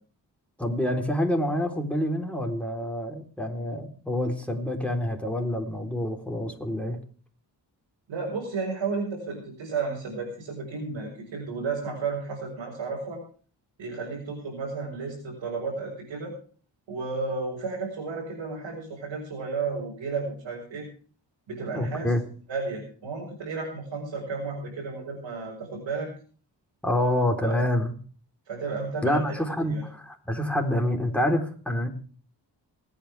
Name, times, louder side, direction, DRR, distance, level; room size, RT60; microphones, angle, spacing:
voice 1, 0.6-7.0 21.7-22.2 26.8-27.9 29.0-31.9, left 1 dB, 5° left, 1 dB, 3.9 m, -27 dB
voice 2, 8.1-13.2 13.8-16.3 16.9-20.9 21.5-22.1 22.5-26.1 27.4-27.6 28.5-29.4 29.7-29.8, right 4 dB, 75° right, -3 dB, 5.5 m, -33 dB
27.0 x 9.2 x 3.5 m, 0.41 s
supercardioid pair, 50°, 45 cm